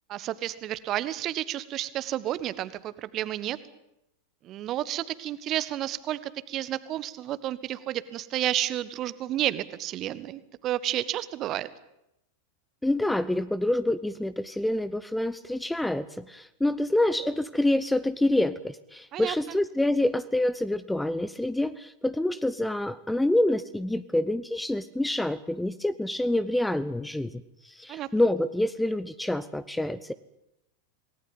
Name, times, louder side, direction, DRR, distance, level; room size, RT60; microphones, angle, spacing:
voice 1, 0.1-3.6 4.4-11.7 19.1-19.6 27.9-28.1, right 13 dB, 35° right, 16 dB, 1.5 m, -31 dB
voice 2, 12.8-30.1, left 1 dB, 5° left, 16 dB, 0.9 m, -27 dB
27.5 x 19.0 x 9.1 m, 0.86 s
figure-of-eight pair, 90°, 0 cm